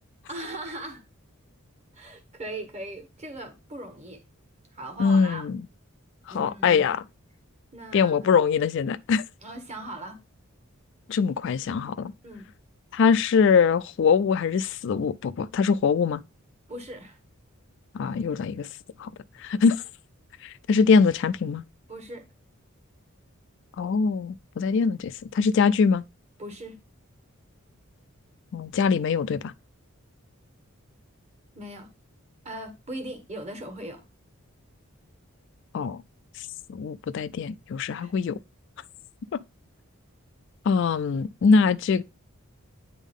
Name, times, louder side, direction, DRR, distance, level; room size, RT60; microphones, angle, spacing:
voice 1, 0.3-1.0 1.9-4.2 4.7-5.4 6.3-6.8 7.7-8.3 9.4-10.2 12.2-12.5 16.7-17.2 21.9-22.2 26.4-26.8 31.5-31.9 32.4-34.0 38.0-38.1, right 1 dB, 30° right, 1.5 m, -39 dB
voice 2, 5.0-5.6 6.3-7.0 7.9-9.2 11.1-12.1 12.9-16.2 17.9-18.7 19.0-19.1 19.4-19.8 20.4-21.6 23.8-26.0 28.5-29.5 35.7-36.0 36.4-38.4 39.3-39.4 40.7-42.0, left 5 dB, 55° left, 0.3 m, -23 dB
9.1 x 3.6 x 3.5 m
head